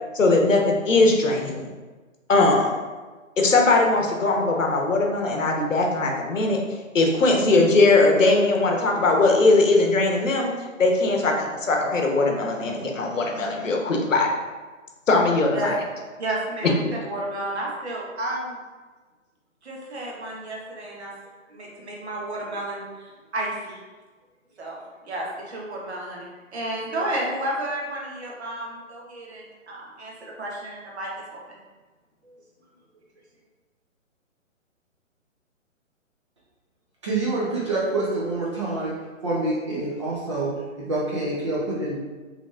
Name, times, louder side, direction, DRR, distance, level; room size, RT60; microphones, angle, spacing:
voice 1, 0.1-1.7 2.3-2.8 3.4-6.6 6.9-10.5 10.8-14.3 15.1-15.7, left 3 dB, 70° left, 1 dB, 1.0 m, -20 dB
voice 2, 16.2-16.7 17.0-18.6 19.6-21.1 21.5-23.8 24.6-24.8 25.1-31.6 32.2-32.3, right 1 dB, 55° right, -3 dB, 1.2 m, -32 dB
voice 3, 37.0-38.9 39.2-42.0, right 2 dB, 25° right, -6 dB, 0.5 m, -26 dB
4.9 x 3.3 x 2.4 m, 1.3 s
figure-of-eight pair, 135°, 40 cm